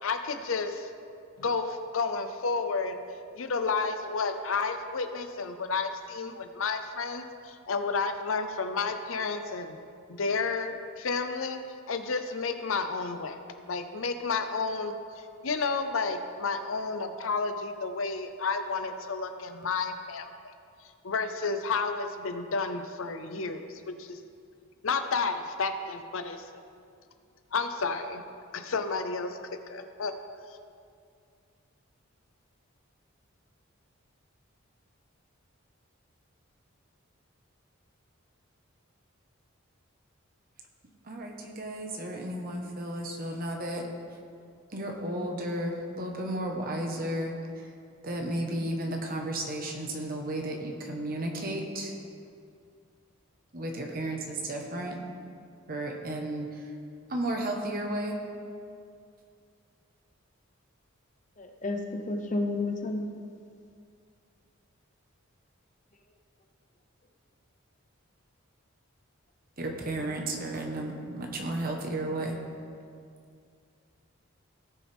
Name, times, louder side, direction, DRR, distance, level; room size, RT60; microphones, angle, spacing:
voice 1, 0.0-0.9 1.4-3.0 3.3-9.8 10.1-11.6 11.9-13.4 13.7-14.9 15.4-20.3 21.0-24.2 24.8-26.4 27.5-28.2 28.5-29.4 29.7-30.1, left 4 dB, 70° left, 8 dB, 0.7 m, -31 dB
voice 2, 41.0-43.9 44.7-47.3 47.6-47.7 48.0-51.9 53.5-55.0 55.7-56.7 57.1-58.2 69.6-72.5, right 1 dB, 45° right, 2 dB, 1.2 m, -33 dB
voice 3, 61.4-63.1, left 2 dB, 35° left, 4 dB, 0.8 m, -31 dB
18.0 x 6.3 x 3.5 m, 2.3 s
head